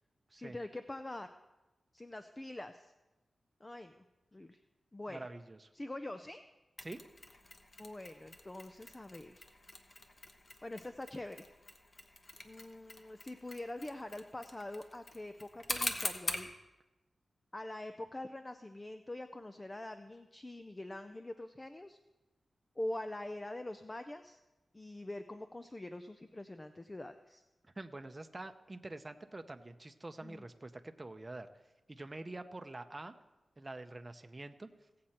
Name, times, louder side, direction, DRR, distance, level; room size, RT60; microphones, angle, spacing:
voice 1, 0.4-1.3 1.9-2.9 3.6-4.0 4.3-4.6 4.9-5.3 5.7-6.4 7.8-9.5 10.6-11.4 12.4-16.5 17.5-22.0 22.8-24.4 24.7-27.4 30.2-30.5, left 1 dB, 25° left, 9 dB, 0.6 m, -44 dB
voice 2, 5.1-5.7 6.8-7.0 27.8-31.5 31.9-33.1 33.6-34.7, right 2 dB, 30° right, 8 dB, 0.7 m, -46 dB
Mechanisms, 6.8-16.5, left 2 dB, 45° left, 1.2 m, -44 dB
17.0 x 7.7 x 4.3 m, 1.1 s
cardioid pair, 60°, 0 cm